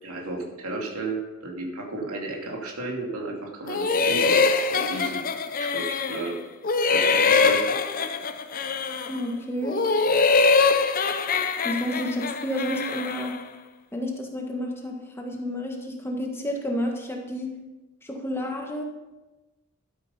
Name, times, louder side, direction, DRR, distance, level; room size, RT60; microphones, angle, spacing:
voice 1, 0.0-5.2 5.5-6.4 6.9-7.8, right 2 dB, 80° right, 1 dB, 2.6 m, -33 dB
sound 1, 3.7-6.3 6.6-9.2 9.6-13.4, left 4 dB, 40° left, 0.7 m, -23 dB
voice 2, 9.1-9.8 11.6-13.3 13.9-17.5 18.0-18.8, equal, 10° left, 0 dB, 1.6 m, -30 dB
12.5 x 9.6 x 5.5 m, 1.1 s
head